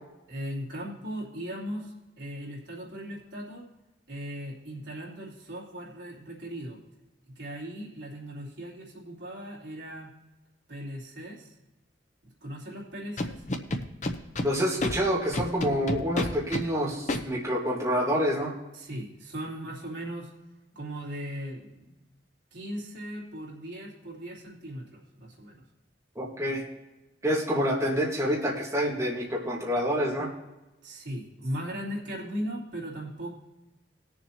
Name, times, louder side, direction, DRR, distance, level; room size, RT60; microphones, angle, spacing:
voice 1, 0.3-3.7 4.1-6.8 7.3-10.1 10.7-11.5 12.4-13.4 18.7-20.3 20.7-22.0 22.5-25.6 30.8-33.3, equal, 75° right, -5 dB, 3.3 m, -38 dB
Scratching (performance technique), 13.2-14.5 14.8-14.9 15.3-16.6 17.1-17.2, left 1 dB, 40° left, 0.8 m, -28 dB
voice 2, 14.4-18.5 26.1-26.6 27.2-30.3, equal, 15° right, -4 dB, 1.8 m, -27 dB
19.5 x 7.1 x 2.9 m, 1.0 s
head